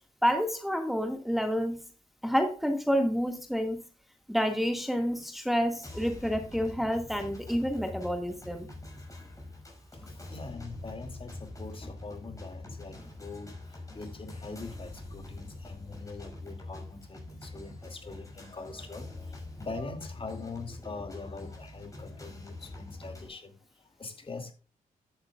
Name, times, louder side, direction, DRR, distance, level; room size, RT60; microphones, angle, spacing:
voice 1, 0.2-1.8 2.2-3.8 4.3-8.7, equal, ahead, 1.8 m, -29 dB
sound 1, 5.8-23.3, left 2 dB, 20° left, 5.9 m, -44 dB
voice 2, 9.9-24.5, left 3 dB, 35° left, 2.5 m, -43 dB
13.0 x 9.1 x 2.4 m
cardioid pair, 80°, 15 cm